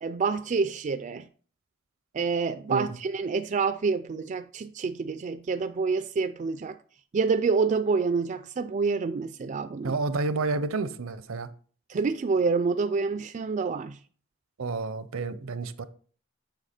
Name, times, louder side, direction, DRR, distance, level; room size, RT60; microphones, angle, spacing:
voice 1, 0.0-1.3 2.1-6.8 7.1-10.0 11.9-14.0, right 4 dB, 35° right, 0.4 m, -27 dB
voice 2, 9.8-11.5 14.6-15.8, right 3 dB, 75° right, 0.7 m, -30 dB
8.1 x 5.9 x 4.3 m
head